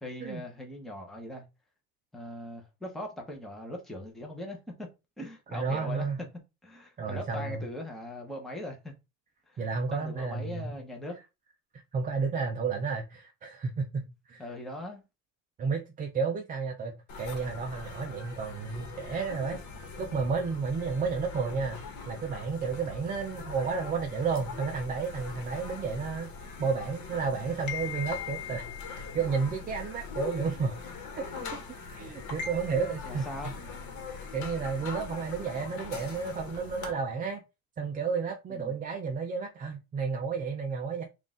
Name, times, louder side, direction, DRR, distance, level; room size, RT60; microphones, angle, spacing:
voice 1, 0.0-1.5 2.1-4.9 5.2-6.1 6.6-8.9 9.5-9.6 9.9-11.2 14.4-15.0 33.0-33.5 38.5-38.8, left 1 dB, ahead, 1.0 m, -40 dB
voice 2, 5.5-6.2 7.0-7.7 9.6-10.8 11.7-14.4 15.6-19.6 20.0-21.8 22.1-30.8 31.2-31.6 31.9-33.3 34.3-37.4 37.8-41.0, right 5 dB, 20° right, 0.5 m, -32 dB
sound 1, 17.1-36.9, left 5 dB, 50° left, 1.3 m, -41 dB
3.8 x 2.6 x 3.6 m
cardioid pair, 130°, 38 cm